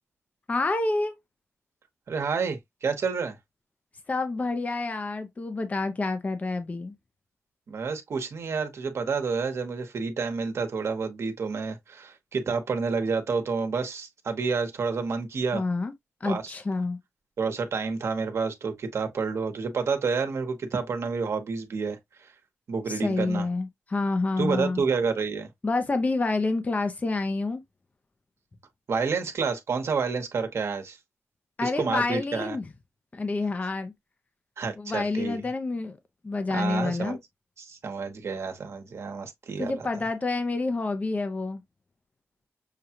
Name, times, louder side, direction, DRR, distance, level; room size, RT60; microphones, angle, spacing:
voice 1, 0.5-1.2 4.1-6.9 15.5-15.9 16.2-17.0 22.9-24.8 25.6-27.6 31.6-32.7 33.1-33.9 34.8-36.0 36.2-37.2 39.6-41.6, left 3 dB, 30° left, 0.6 m, -28 dB
voice 2, 2.1-3.4 7.7-15.6 16.2-16.5 17.4-22.3 22.7-23.5 24.4-25.5 28.9-31.0 31.6-32.6 34.6-35.4 36.5-37.2 37.6-39.8, right 5 dB, 70° right, 1.1 m, -29 dB
6.5 x 2.3 x 2.8 m
cardioid pair, 80°, 5 cm